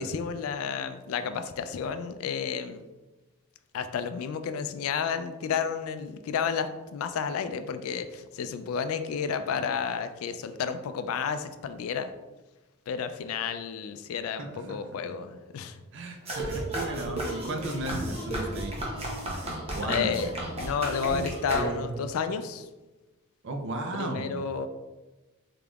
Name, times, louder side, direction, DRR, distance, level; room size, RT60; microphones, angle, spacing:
voice 1, 0.0-2.8 3.7-12.1 12.9-15.8 19.8-20.3 20.6-22.7 23.9-24.7, left 6 dB, 85° left, 10 dB, 0.3 m, -31 dB
voice 2, 14.4-15.2 15.9-18.7 19.7-20.1 23.4-24.4, right 2 dB, 60° right, 4 dB, 0.5 m, -35 dB
sound 1, 16.3-22.1, right 1 dB, 30° right, 0.8 m, -33 dB
3.8 x 3.5 x 2.3 m, 1.1 s
head